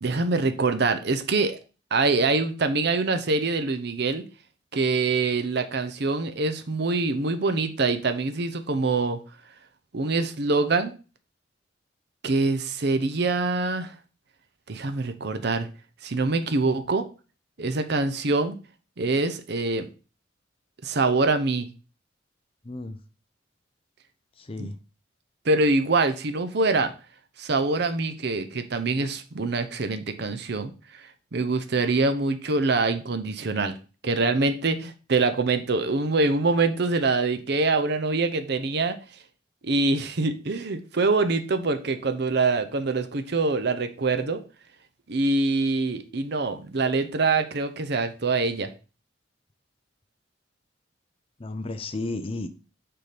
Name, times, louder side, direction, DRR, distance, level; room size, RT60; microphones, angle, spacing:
voice 1, 0.0-1.6 1.9-4.2 4.7-9.2 9.9-10.9 12.2-13.9 14.7-15.7 16.0-17.1 17.6-18.6 19.0-19.9 20.8-21.7 24.6-24.7 25.4-26.9 27.4-30.7 31.0-33.8 34.0-39.0 39.6-44.4 45.1-48.7, right 3 dB, 60° right, 10 dB, 0.7 m, -24 dB
voice 2, 22.7-23.0 24.5-24.7 51.4-52.5, left 2 dB, 30° left, 8 dB, 0.7 m, -32 dB
6.7 x 3.8 x 5.0 m, 0.34 s
head